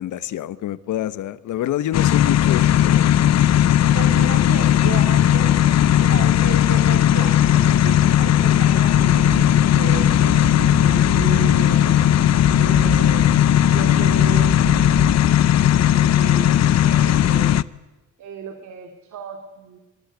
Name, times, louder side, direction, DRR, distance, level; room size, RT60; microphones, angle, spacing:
voice 1, 0.0-3.1 13.0-13.4, left 12 dB, 75° left, 1.2 m, -27 dB
sound 1, 1.9-17.6, left 11 dB, 60° left, 0.7 m, -16 dB
voice 2, 3.9-12.0 12.6-14.6 15.1-15.3 15.8-17.6 18.2-19.8, right 7 dB, 70° right, 2.7 m, -35 dB
sound 2, 8.9-15.1, right 4 dB, 50° right, 6.1 m, -31 dB
23.5 x 21.0 x 9.4 m
cardioid pair, 90°, 30 cm